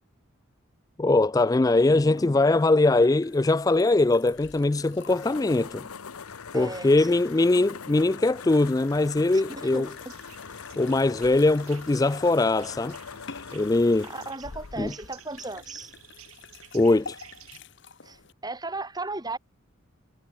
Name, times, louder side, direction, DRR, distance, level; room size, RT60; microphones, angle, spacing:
voice 1, 1.0-5.8 6.5-9.9 10.8-13.0 13.5-14.1 14.8-14.9 16.7-17.2, left 2 dB, 15° left, 0.3 m, -21 dB
sound 1, 1.8-18.3, left 5 dB, 55° left, 1.6 m, -50 dB
sound 2, 4.3-16.1, left 6 dB, 90° left, 0.9 m, -43 dB
voice 2, 6.5-7.1 9.3-9.9 14.0-15.9 18.0-19.4, right 2 dB, 20° right, 2.8 m, -36 dB
sound 3, 9.6-17.6, right 10 dB, 85° right, 2.7 m, -52 dB
head